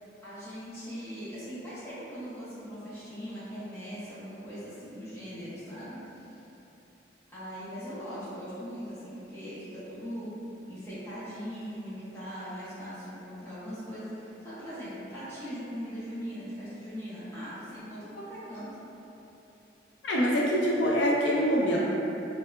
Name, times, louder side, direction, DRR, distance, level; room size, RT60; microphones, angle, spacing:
voice 1, 0.2-6.4 7.3-10.3 10.7-18.7, equal, 15° left, -13 dB, 1.0 m, -40 dB
voice 2, 20.0-21.8, equal, 80° left, -4 dB, 0.4 m, -25 dB
3.3 x 2.8 x 2.2 m, 3.0 s
head